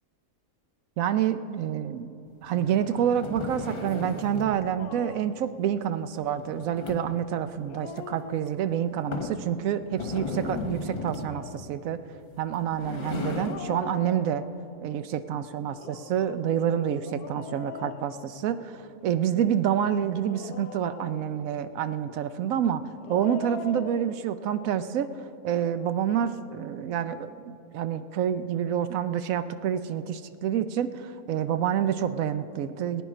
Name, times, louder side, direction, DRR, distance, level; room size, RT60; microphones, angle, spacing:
voice 1, 1.0-2.1 2.4-12.0 12.4-14.4 14.8-22.8 23.1-25.1 25.4-33.0, right 9 dB, 70° right, 12 dB, 0.9 m, -28 dB
sound 1, 2.4-4.6 6.4-7.3 7.9-8.0 8.5-8.6 9.1-9.4 9.9-11.4 12.4-13.7, left 3 dB, 40° left, 1.5 m, -35 dB
Dog, 4.8-5.4 7.5-8.9 11.0-11.7 13.3-14.7 15.7-18.8 20.1-21.5 22.8-24.2, left 7 dB, 85° left, 1.1 m, -43 dB
19.0 x 9.4 x 4.9 m, 2.8 s
omnidirectional pair, 1.6 m